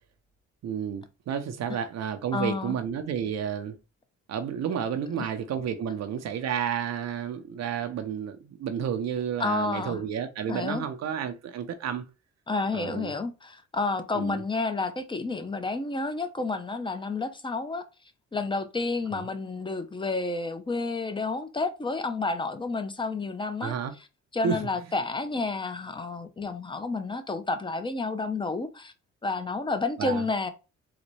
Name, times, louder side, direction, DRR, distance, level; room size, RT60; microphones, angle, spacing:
voice 1, 0.6-3.8 4.3-12.0 12.7-13.1 14.1-14.4 19.1-19.2 23.6-23.9 24.4-24.6 30.0-30.2, right 8 dB, 60° right, 0.6 m, -31 dB
voice 2, 2.3-2.7 5.2-5.3 9.4-10.0 10.5-10.8 12.5-17.8 18.3-23.8 24.3-28.9 29.2-30.5, left 3 dB, 15° left, 0.6 m, -30 dB
3.9 x 2.1 x 3.1 m
cardioid pair, 90°, 30 cm